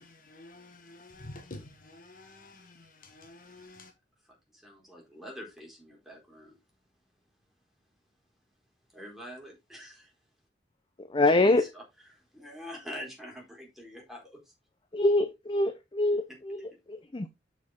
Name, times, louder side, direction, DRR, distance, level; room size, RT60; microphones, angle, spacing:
voice 1, 0.0-3.9, left 2 dB, 50° left, 1.6 m, -49 dB
voice 2, 4.5-6.6 8.9-10.1 11.3-11.8 12.1-14.2, equal, ahead, 4.2 m, -45 dB
voice 3, 11.0-11.6 14.9-17.3, left 2 dB, 25° left, 0.6 m, -25 dB
8.0 x 6.4 x 3.7 m
head